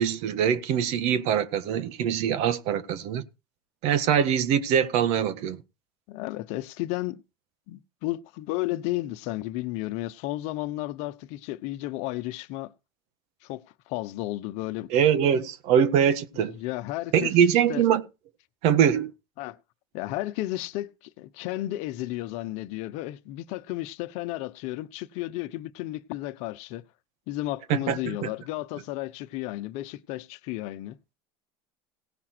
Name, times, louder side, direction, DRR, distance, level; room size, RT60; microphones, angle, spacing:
voice 1, 0.0-3.2 3.8-5.6 14.9-16.6 17.1-18.0 18.6-19.1 27.7-28.3, right 8 dB, 65° right, 1.6 m, -23 dB
voice 2, 6.1-7.2 7.7-12.7 13.4-14.9 16.5-17.9 19.4-19.6 19.9-26.8 27.3-31.0, left 16 dB, 65° left, 1.0 m, -33 dB
18.0 x 6.1 x 4.5 m
hypercardioid pair, 90°, 12 cm